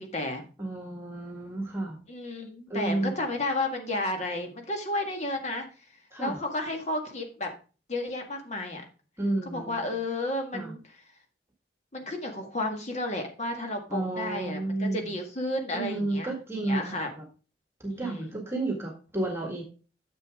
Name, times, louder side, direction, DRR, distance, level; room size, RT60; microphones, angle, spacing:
voice 1, 0.0-0.4 2.1-5.6 6.2-7.5 7.9-8.8 9.5-10.8 11.9-16.3 16.7-17.1 17.9-18.3, left 2 dB, 40° left, 3 dB, 1.8 m, -32 dB
voice 2, 0.6-2.0 2.7-3.2 6.1-6.4 9.2-9.9 10.5-10.7 13.9-15.1 15.7-17.2 17.8-19.6, right 2 dB, 15° right, 1 dB, 1.8 m, -31 dB
9.6 x 7.0 x 3.6 m, 0.36 s
head